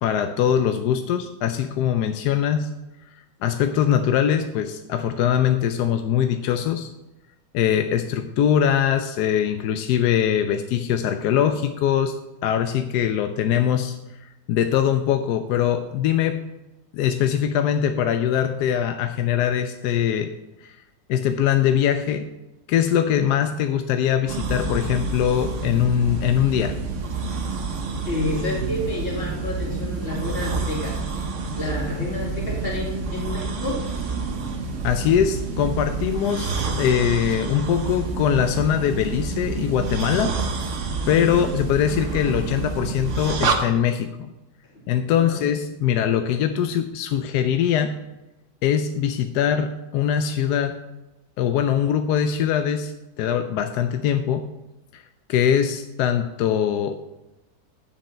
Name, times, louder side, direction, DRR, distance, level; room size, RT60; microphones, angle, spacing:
voice 1, 0.0-2.7 3.4-6.9 7.5-12.1 12.4-16.4 16.9-20.3 20.6-20.8 21.1-22.3 22.7-26.8 34.8-40.4 41.1-44.3 44.9-48.0 48.6-50.8 51.4-54.5 54.9-55.0 55.3-57.0, left 9 dB, 75° left, 8 dB, 1.0 m, -22 dB
sound 1, 24.3-43.6, right 4 dB, 50° right, 1.1 m, -28 dB
voice 2, 28.0-31.0 31.5-33.8 41.1-41.5 45.1-45.4, left 2 dB, 30° left, -4 dB, 2.9 m, -29 dB
9.2 x 7.1 x 4.3 m, 0.98 s
omnidirectional pair, 1.9 m